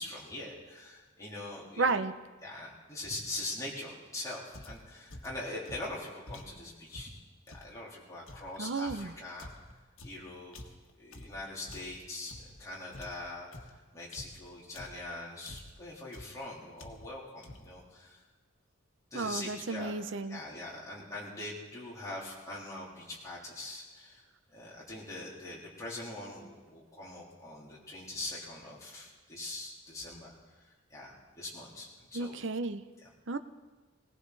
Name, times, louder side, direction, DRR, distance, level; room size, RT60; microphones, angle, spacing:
voice 1, 0.0-1.9 2.4-7.1 7.5-9.5 10.0-12.3 12.6-18.2 19.1-19.9 20.3-24.2 24.5-30.3 30.6-32.4 33.0-33.1, left 2 dB, 15° left, -6 dB, 3.6 m, -43 dB
voice 2, 1.8-2.1 8.6-9.1 19.1-20.4 32.1-32.8 33.3-33.4, right 3 dB, 65° right, 11 dB, 0.7 m, -32 dB
sound 1, 4.5-7.8 8.3-12.6 12.9-15.1 15.4-15.9 16.1-16.5 16.8-17.2 17.4-17.8, left 1 dB, 85° left, 1.5 m, -49 dB
19.5 x 18.5 x 4.1 m, 1.3 s
head